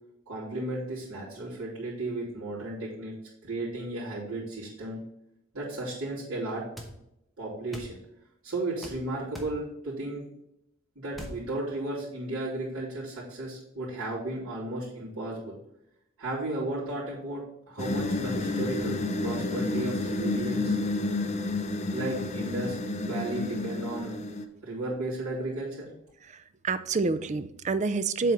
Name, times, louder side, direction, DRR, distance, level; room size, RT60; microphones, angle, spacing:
voice 1, 0.3-3.1 3.4-5.0 5.5-6.6 7.4-8.0 8.4-10.2 10.9-15.6 16.2-20.8 21.9-22.8 23.0-24.1 24.6-25.9, right 2 dB, 75° right, -11 dB, 3.0 m, -34 dB
sound 1, 6.8-6.9 7.7-7.9 8.8-9.0 9.3-9.6 11.1-11.4, equal, ahead, 1.0 m, -40 dB
sound 2, 17.8-24.5, left 2 dB, 30° left, 0.6 m, -30 dB
voice 2, 26.3-28.3, right 4 dB, 35° right, 13 dB, 0.4 m, -28 dB
7.6 x 4.0 x 5.6 m, 0.82 s
head